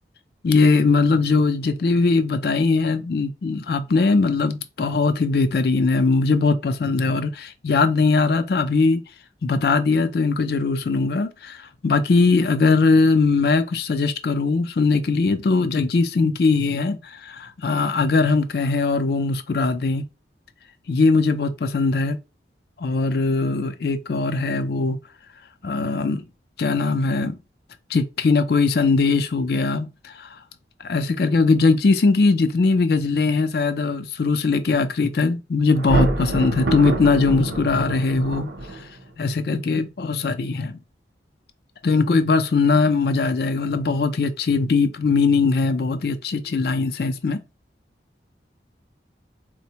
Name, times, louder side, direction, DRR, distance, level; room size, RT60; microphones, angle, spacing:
voice 1, 0.4-9.0 9.4-20.0 20.9-22.2 22.8-25.0 25.6-26.2 26.6-27.4 27.9-30.3 30.8-38.5 39.2-40.8 41.8-47.4, left 4 dB, 60° left, 0.4 m, -20 dB
Thunder, 35.7-39.1, right 2 dB, 70° right, 0.7 m, -26 dB
4.1 x 2.1 x 2.8 m
head